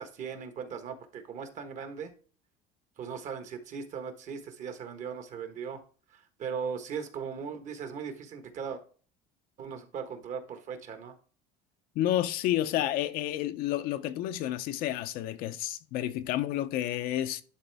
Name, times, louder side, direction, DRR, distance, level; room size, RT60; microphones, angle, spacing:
voice 1, 0.0-2.1 3.0-5.8 6.1-8.8 9.6-11.1, right 6 dB, 45° right, 1.3 m, -38 dB
voice 2, 11.9-17.4, left 13 dB, 65° left, 0.7 m, -30 dB
11.0 x 3.8 x 3.4 m
cardioid pair, 125°, 17 cm